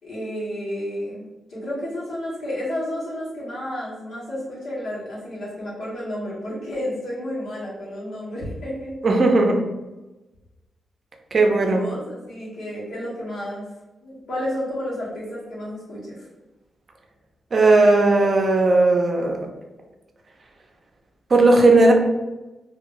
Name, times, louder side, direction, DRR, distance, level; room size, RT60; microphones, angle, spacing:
voice 1, 0.0-8.9 11.6-13.7 14.0-16.3, left 1 dB, 90° left, -8 dB, 1.5 m, -31 dB
voice 2, 9.0-9.6 11.3-11.8 17.5-19.4 21.3-21.9, right 2 dB, 45° right, 2 dB, 0.5 m, -16 dB
2.9 x 2.6 x 3.0 m, 1.1 s
wide cardioid pair, 130°, 0 cm